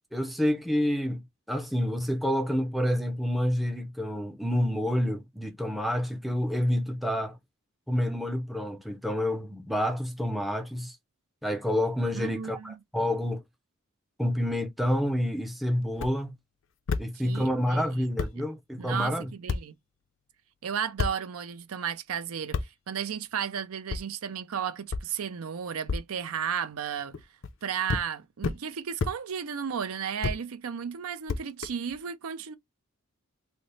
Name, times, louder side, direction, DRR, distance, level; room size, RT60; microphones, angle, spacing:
voice 1, 0.1-7.4 7.9-11.0 11.4-13.4 14.2-16.4 17.0-19.3, equal, ahead, 0.4 m, -28 dB
voice 2, 12.1-12.8 17.2-18.5 18.8-19.7 20.6-27.1 27.6-32.5, right 7 dB, 80° right, 0.5 m, -34 dB
sound 1, 15.9-16.1 16.9-17.0 17.8-17.9 18.2-18.3 19.5-19.6 21.0-21.1 22.5-22.7 23.9-24.0 24.9-25.0 25.9-26.0 27.1-27.5 27.9-28.1 28.4-28.6 29.0-29.1 30.2-30.4 31.3-32.0, left 4 dB, 60° left, 0.5 m, -29 dB
3.3 x 2.0 x 3.9 m
head